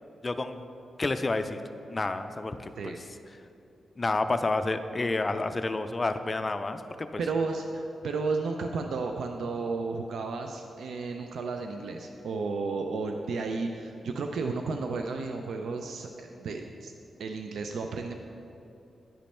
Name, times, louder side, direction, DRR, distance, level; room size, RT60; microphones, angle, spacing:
voice 1, 0.2-0.6 1.0-1.6 1.9-2.9 4.0-7.2, left 2 dB, 25° left, 9 dB, 0.4 m, -29 dB
voice 2, 7.2-16.9 17.2-18.1, right 4 dB, 85° right, 4 dB, 0.4 m, -33 dB
10.0 x 5.2 x 4.3 m, 2.7 s
wide cardioid pair, 135°, 0 cm